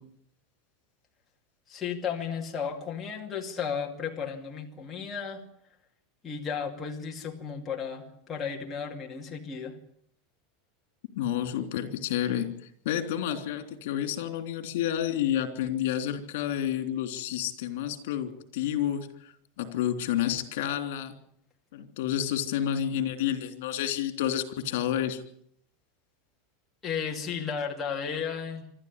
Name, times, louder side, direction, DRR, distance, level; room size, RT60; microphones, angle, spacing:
voice 1, 1.7-5.4 6.2-9.7 26.8-28.7, left 6 dB, 15° left, -1 dB, 2.5 m, -34 dB
voice 2, 11.1-12.5 12.8-19.1 19.6-21.1 21.7-25.2, left 10 dB, 65° left, 8 dB, 3.3 m, -29 dB
26.0 x 13.0 x 9.8 m, 0.69 s
supercardioid pair, 170°, 0 cm